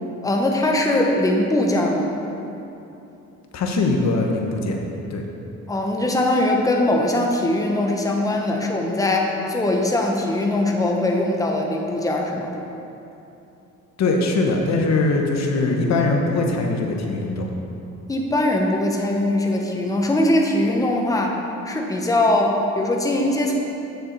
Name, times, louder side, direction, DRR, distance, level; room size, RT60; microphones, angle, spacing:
voice 1, 0.2-2.1 5.7-12.5 18.1-21.4 21.7-23.5, left 1 dB, 10° left, 0 dB, 0.9 m, -21 dB
voice 2, 3.5-4.8 5.1-5.2 14.0-17.5, left 3 dB, 60° left, 1 dB, 1.0 m, -21 dB
8.0 x 7.0 x 4.0 m, 2.9 s
cardioid pair, 90°, 30 cm